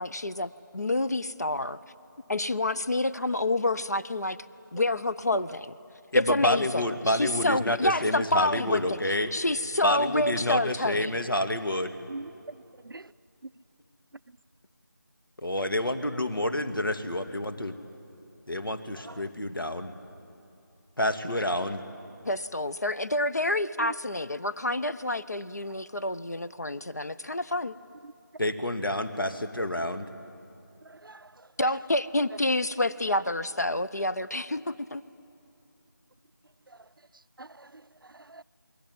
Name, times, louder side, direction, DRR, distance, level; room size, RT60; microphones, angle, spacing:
voice 1, 0.0-1.8 2.3-4.4 4.7-5.8 6.1-9.0 9.3-11.2 22.3-27.8 31.6-35.0, left 2 dB, 50° left, 0.7 m, -28 dB
voice 2, 6.1-9.3 9.8-11.9 15.4-17.8 18.5-19.9 21.0-21.8 28.4-30.0, left 1 dB, 90° left, 2.3 m, -28 dB
voice 3, 30.9-31.3 37.4-37.8 38.1-38.4, right 2 dB, 85° right, 0.6 m, -42 dB
28.5 x 21.5 x 9.5 m
figure-of-eight pair, 175°, 11 cm